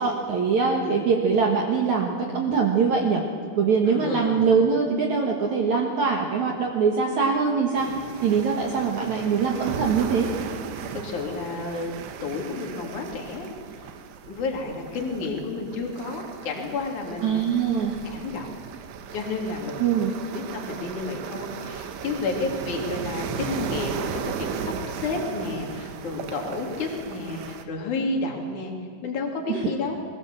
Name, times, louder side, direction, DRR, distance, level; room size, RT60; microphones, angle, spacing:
voice 1, 0.0-3.2 3.6-7.9 8.2-10.3 17.2-17.9 19.8-20.1 29.5-29.6, right 5 dB, 55° right, 0 dB, 2.5 m, -23 dB
voice 2, 3.9-4.4 10.9-12.0 12.2-13.9 14.2-17.4 18.1-18.5 19.1-28.7 29.0-30.0, left 3 dB, 50° left, 1 dB, 4.0 m, -31 dB
sound 1, 7.7-27.6, right 7 dB, 90° right, 3.5 m, -36 dB
23.0 x 21.5 x 7.5 m, 2.2 s
omnidirectional pair, 4.8 m